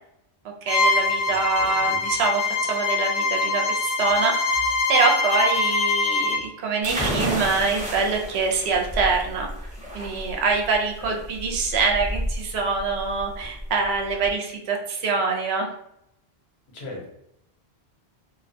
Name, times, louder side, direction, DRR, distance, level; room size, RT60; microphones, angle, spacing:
voice 1, 0.6-9.5 9.9-15.7, right 4 dB, 75° right, 1 dB, 0.8 m, -25 dB
Bowed string instrument, 0.7-6.4, left 3 dB, 60° left, 0.7 m, -23 dB
voice 2, 1.3-2.0 11.0-11.5 16.7-17.1, left 2 dB, 75° left, -1 dB, 1.0 m, -40 dB
sound 1, 6.8-14.3, equal, 10° right, 0.6 m, -31 dB
2.3 x 2.1 x 2.6 m, 0.76 s
omnidirectional pair, 1.1 m